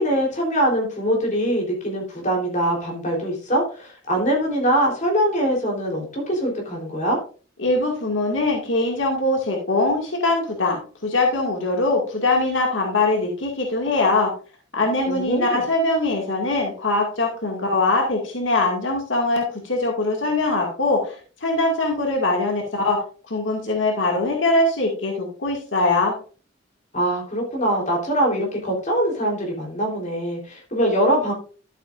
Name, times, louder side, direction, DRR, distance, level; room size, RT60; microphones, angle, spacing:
voice 1, 0.0-7.2 15.1-15.6 26.9-31.3, right 1 dB, 40° left, -1 dB, 3.6 m, -23 dB
voice 2, 7.6-14.3 14.7-26.1, left 2 dB, 80° left, 0 dB, 2.2 m, -22 dB
12.5 x 8.2 x 2.5 m, 0.38 s
head